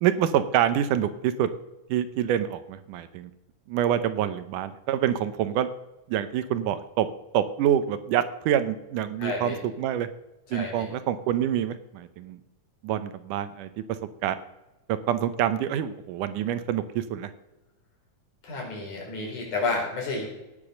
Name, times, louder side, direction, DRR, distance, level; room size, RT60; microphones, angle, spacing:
voice 1, 0.0-1.5 1.9-3.3 3.7-5.7 6.1-7.1 7.3-10.1 10.5-12.4 12.8-13.7 14.2-14.4 14.9-17.3, right 10 dB, 85° right, 12 dB, 2.4 m, -26 dB
voice 2, 9.2-9.6 10.5-10.9 18.4-20.3, left 3 dB, 75° left, -2 dB, 5.9 m, -30 dB
17.5 x 6.9 x 6.4 m, 0.97 s
omnidirectional pair, 3.6 m